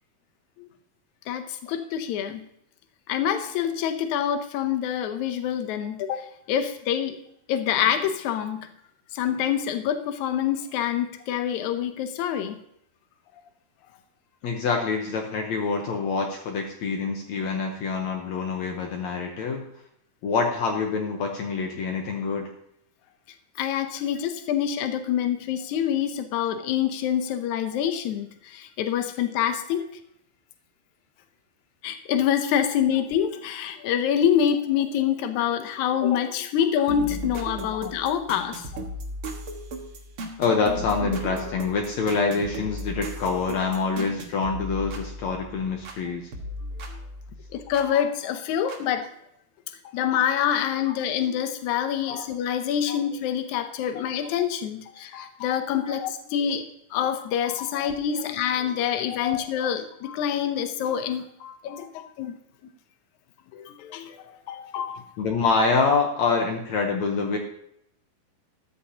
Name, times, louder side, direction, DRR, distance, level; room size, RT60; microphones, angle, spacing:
voice 1, 1.3-2.5 3.1-7.2 7.5-8.7 9.1-12.5 23.6-29.8 31.8-38.7 47.5-49.1 49.9-56.6 56.9-62.4 63.5-65.0, left 9 dB, 90° left, 8 dB, 1.6 m, -26 dB
voice 2, 14.4-19.7 20.2-22.5 37.7-37.8 40.4-46.3 50.8-50.9 52.1-52.3 52.9-53.0 55.9-56.0 57.7-58.3 58.9-59.7 65.2-67.4, left 4 dB, 70° left, 2 dB, 1.7 m, -26 dB
sound 1, 36.9-46.0 46.3-47.9 48.7-48.8, equal, 55° right, 1.6 m, -36 dB
13.5 x 13.0 x 2.9 m, 0.74 s
omnidirectional pair, 4.5 m